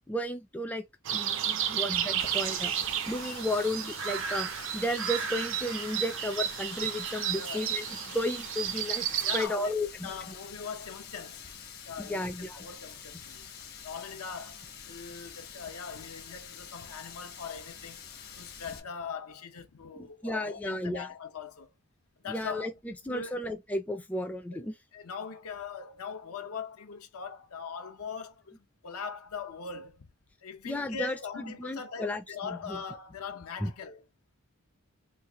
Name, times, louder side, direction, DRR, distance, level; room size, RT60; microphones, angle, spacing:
voice 1, 0.1-0.9 1.1-2.7 3.1-10.1 12.0-12.7 19.9-21.1 22.3-24.7 30.7-32.2 32.5-32.8 33.6-33.7, left 1 dB, 5° left, 0.3 m, -33 dB
sound 1, 1.0-9.5, right 9 dB, 60° right, 0.5 m, -32 dB
Water tap faucet, 2.2-18.8, left 7 dB, 45° left, 0.7 m, -47 dB
voice 2, 7.3-7.7 9.2-11.4 11.8-13.5 13.8-18.0 18.4-21.7 22.2-22.7 23.1-23.4 24.9-30.1 30.4-34.0, left 5 dB, 85° left, 0.7 m, -41 dB
3.2 x 2.4 x 3.4 m
head